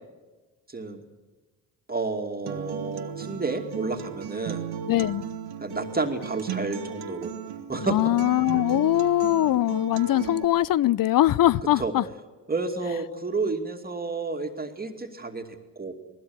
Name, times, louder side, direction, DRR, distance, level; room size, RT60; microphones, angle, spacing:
voice 1, 0.7-1.0 1.9-4.6 5.6-7.3 7.7-8.0 11.8-11.9 12.5-15.5 15.8-15.9, right 3 dB, 25° right, 2.6 m, -30 dB
Acoustic guitar, 2.5-10.4, right 7 dB, 70° right, 1.6 m, -36 dB
voice 2, 4.9-5.2 7.9-12.0, left 14 dB, 60° left, 0.6 m, -22 dB
19.5 x 17.0 x 9.7 m
supercardioid pair, 65°, 39 cm